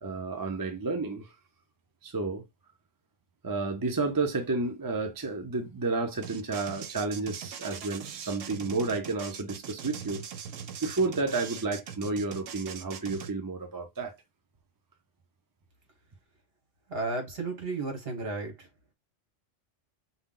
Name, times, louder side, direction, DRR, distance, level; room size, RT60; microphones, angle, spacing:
voice 1, 0.0-1.3 2.0-2.4 3.4-10.2 10.8-14.1, right 3 dB, 25° right, 0.5 m, -31 dB
sound 1, 6.2-13.3, right 7 dB, 80° right, 1.0 m, -41 dB
voice 2, 16.9-18.7, right 3 dB, 50° right, 1.5 m, -33 dB
5.5 x 2.3 x 3.7 m
omnidirectional pair, 1.3 m